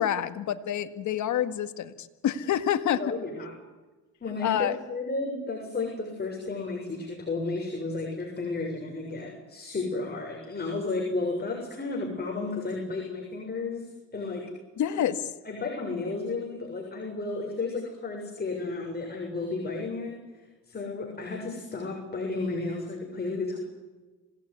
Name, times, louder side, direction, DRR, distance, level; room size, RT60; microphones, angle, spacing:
voice 1, 0.0-3.0 4.4-4.8 14.8-15.2, left 10 dB, 75° left, 11 dB, 2.0 m, -27 dB
voice 2, 3.0-3.6 4.2-14.5 14.9-15.0 15.4-20.2 20.7-23.6, left 3 dB, 30° left, 0 dB, 7.1 m, -33 dB
27.0 x 18.5 x 9.7 m, 1.2 s
cardioid pair, 90°, 30 cm